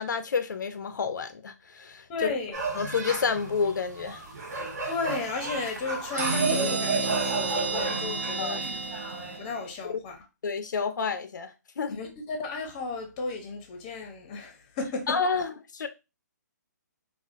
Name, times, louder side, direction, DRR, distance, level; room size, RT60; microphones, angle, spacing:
voice 1, 0.0-2.3 2.7-4.2 8.4-8.6 9.8-10.0 10.4-12.0 15.1-15.9, left 5 dB, 75° left, 0.5 m, -29 dB
voice 2, 2.1-2.6 4.9-8.8 9.4-10.2 11.9-15.2, left 4 dB, 20° left, 0.6 m, -34 dB
sound 1, 2.5-9.4, right 3 dB, 60° right, 1.3 m, -33 dB
sound 2, 6.2-9.7, right 4 dB, 40° right, 0.5 m, -31 dB
4.1 x 2.5 x 2.4 m
hypercardioid pair, 165°, 10 cm